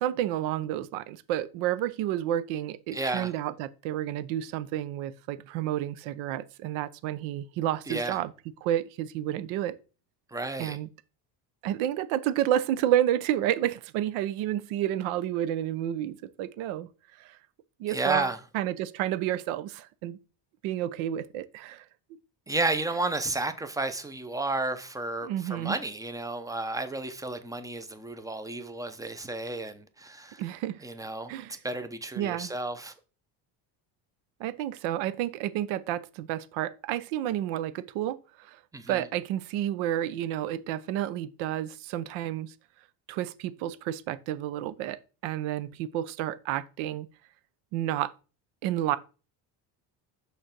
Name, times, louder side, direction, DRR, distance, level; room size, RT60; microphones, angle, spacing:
voice 1, 0.0-8.3 8.6-9.8 10.6-10.9 11.6-16.9 17.2-17.4 17.8-20.2 20.6-21.8 25.2-25.8 30.4-30.8 31.3-31.6 32.2-32.5 34.4-38.6 38.9-42.5 43.1-47.1 47.7-48.1 48.6-49.0, right 12 dB, 85° right, 0.8 m, -30 dB
voice 2, 2.9-3.3 7.9-8.2 10.3-10.8 17.9-18.4 22.5-30.4 30.8-32.9 38.7-39.1, right 2 dB, 5° right, 0.7 m, -32 dB
6.4 x 3.4 x 5.9 m
cardioid pair, 120°, 46 cm